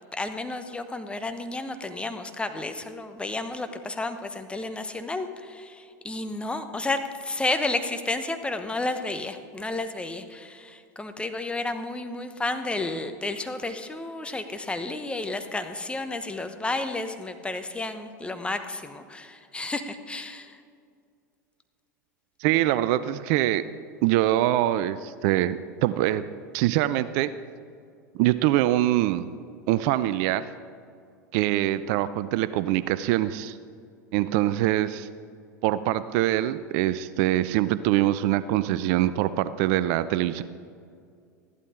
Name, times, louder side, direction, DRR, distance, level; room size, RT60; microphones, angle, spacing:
voice 1, 0.1-20.6, left 2 dB, 10° left, 8 dB, 1.0 m, -32 dB
voice 2, 22.4-23.6 24.0-26.3 26.5-27.3 28.1-29.3 29.7-30.5 31.3-33.6 34.1-35.1 35.6-40.4, right 14 dB, 55° right, 15 dB, 0.4 m, -24 dB
14.5 x 12.0 x 3.8 m, 2.3 s
hypercardioid pair, 90°, 10 cm